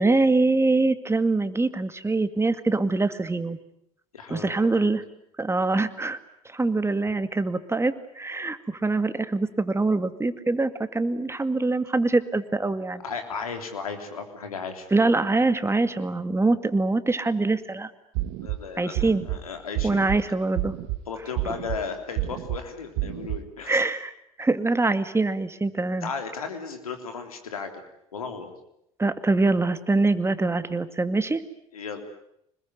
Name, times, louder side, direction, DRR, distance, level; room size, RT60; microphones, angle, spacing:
voice 1, 0.0-3.6 4.3-5.0 5.4-6.2 6.5-13.0 14.9-17.9 18.8-19.2 19.8-20.7 23.7-24.1 24.4-26.1 29.0-31.4, right 3 dB, 15° right, 11 dB, 2.2 m, -24 dB
voice 2, 4.1-4.9 13.0-14.9 18.4-20.2 21.1-23.8 26.0-27.7 28.1-28.5 31.7-32.0, left 5 dB, 90° left, 6 dB, 3.3 m, -35 dB
sound 1, 18.1-18.6 19.0-19.4 19.8-20.2 20.6-21.0 21.4-21.8 22.2-22.6 23.0-23.4, right 16 dB, 65° right, 1.8 m, -29 dB
26.0 x 21.0 x 9.4 m, 0.74 s
hypercardioid pair, 65°, 18 cm